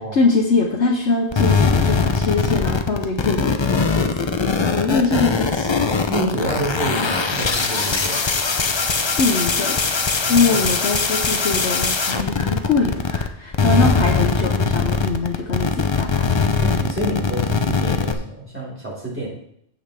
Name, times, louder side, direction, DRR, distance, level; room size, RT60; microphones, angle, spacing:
voice 1, 0.0-5.9 9.2-9.8 10.3-16.3, left 3 dB, 75° left, 0 dB, 1.3 m, -22 dB
sound 1, 1.3-13.3 13.5-18.1, left 4 dB, 30° left, 0.5 m, -21 dB
voice 2, 6.1-8.2 10.2-10.7 13.6-13.9 16.6-19.3, right 1 dB, 10° right, -6 dB, 4.3 m, -28 dB
15.5 x 5.6 x 3.4 m, 0.72 s
omnidirectional pair, 1.2 m